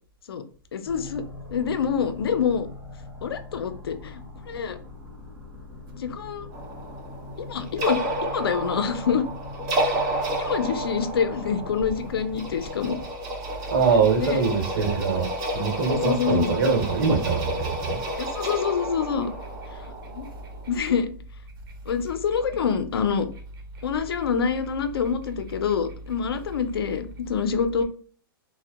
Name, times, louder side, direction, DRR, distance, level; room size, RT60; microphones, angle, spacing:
voice 1, 0.7-1.2 1.5-2.7 3.2-4.2 4.5-4.8 5.9-6.5 7.4-8.0 8.3-9.3 10.4-13.0 14.2-14.4 15.9-16.6 18.2-19.3 19.8-20.3 20.7-21.1 21.9-23.3 23.8-27.8, left 6 dB, 90° left, 0.4 m, -26 dB
sound 1, 0.9-13.0, left 3 dB, ahead, 0.9 m, -41 dB
sound 2, 6.5-20.9, right 1 dB, 35° right, 0.9 m, -31 dB
voice 2, 13.7-18.0, right 5 dB, 65° right, 1.0 m, -23 dB
2.5 x 2.0 x 2.3 m
hypercardioid pair, 130°, 12 cm